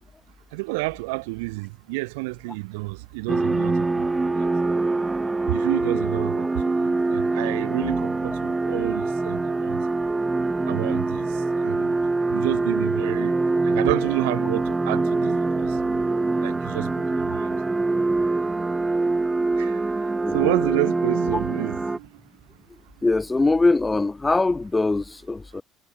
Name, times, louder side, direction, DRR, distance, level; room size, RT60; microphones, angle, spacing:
voice 1, 0.5-4.5 5.5-9.8 10.7-11.3 11.6-12.0 12.3-13.3 13.6-15.8 16.4-17.5 19.6-19.8 20.3-22.1, right 26 dB, 85° right, 0.9 m, -29 dB
sound 1, 3.3-22.0, right 3 dB, 20° right, 0.8 m, -24 dB
voice 2, 20.2-20.5 23.0-25.6, left 3 dB, 20° left, 1.6 m, -22 dB
supercardioid pair, 80°, 0 cm